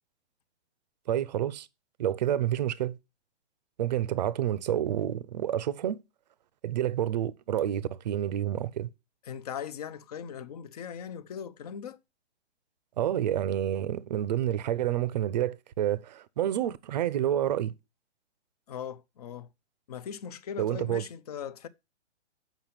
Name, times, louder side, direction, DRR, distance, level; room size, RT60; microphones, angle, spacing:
voice 1, 1.1-1.7 2.0-3.0 3.8-6.0 6.6-8.9 13.0-17.7 20.6-21.0, right 11 dB, 40° right, 0.6 m, -29 dB
voice 2, 9.2-12.0 18.7-19.5 19.9-21.7, left 8 dB, 35° left, 0.6 m, -39 dB
7.2 x 5.8 x 5.7 m
hypercardioid pair, 150°, 35 cm